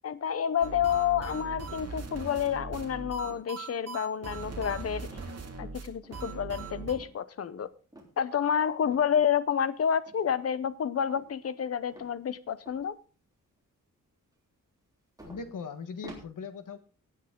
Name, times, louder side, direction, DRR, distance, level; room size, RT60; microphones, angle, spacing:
voice 1, 0.0-5.1 5.6-7.7 8.2-12.9, left 8 dB, 50° left, 15 dB, 0.7 m, -29 dB
sound 1, 0.6-6.9, right 4 dB, 50° right, 2.2 m, -40 dB
sound 2, 1.3-1.8 2.3-2.8 3.2-3.6 4.2-4.5 5.1-5.5 6.0-6.6 7.0-7.2 7.9-8.2 8.8-9.1 10.1-10.6 11.1-11.6 11.9-12.9 13.3-13.4 14.8-14.9 15.2-16.2, right 1 dB, 10° right, 3.3 m, -51 dB
voice 2, 15.2-16.8, left 5 dB, 75° left, 9 dB, 1.5 m, -40 dB
17.0 x 8.2 x 3.7 m, 0.37 s
wide cardioid pair, 155°, 32 cm